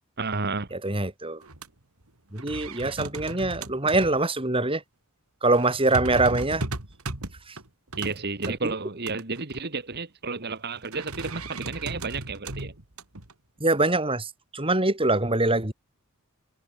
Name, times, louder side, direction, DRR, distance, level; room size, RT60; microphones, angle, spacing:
voice 1, 0.2-0.7 8.0-12.7, right 4 dB, 50° right, 1.8 m, -31 dB
voice 2, 0.7-1.4 2.3-4.8 5.4-6.6 7.5-7.6 8.6-8.7 13.6-15.7, right 2 dB, 25° right, 3.4 m, -24 dB
sound 1, 1.4-1.7 2.0-2.1 2.4-4.2 4.7-4.8 5.5-8.5 9.1-9.6 10.9-13.3, right 2 dB, 80° right, 3.4 m, -36 dB
head